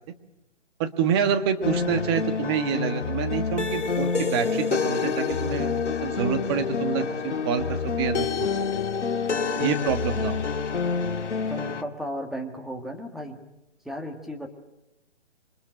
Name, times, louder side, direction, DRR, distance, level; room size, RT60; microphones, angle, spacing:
voice 1, 0.8-5.7 6.0-8.5 9.6-10.4, right 7 dB, 20° right, 8 dB, 1.5 m, -27 dB
sound 1, 1.6-11.8, left 5 dB, 70° left, 2.5 m, -27 dB
voice 2, 11.5-13.4 13.8-14.5, equal, ahead, 2 dB, 1.5 m, -34 dB
27.5 x 24.0 x 9.0 m, 0.89 s
hypercardioid pair, 150°, 36 cm